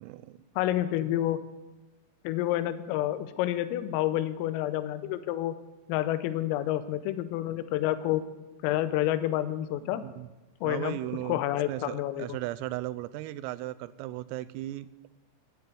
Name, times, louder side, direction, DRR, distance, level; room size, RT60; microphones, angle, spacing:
voice 1, 0.0-0.4 10.0-10.3 10.6-11.4 11.7-14.9, right 15 dB, 90° right, 14 dB, 3.3 m, -36 dB
voice 2, 0.6-1.4 2.3-5.6 5.9-8.2 8.6-10.0 10.6-12.4, left 13 dB, 90° left, 12 dB, 3.4 m, -29 dB
14.0 x 9.3 x 8.5 m, 1.1 s
omnidirectional pair, 5.8 m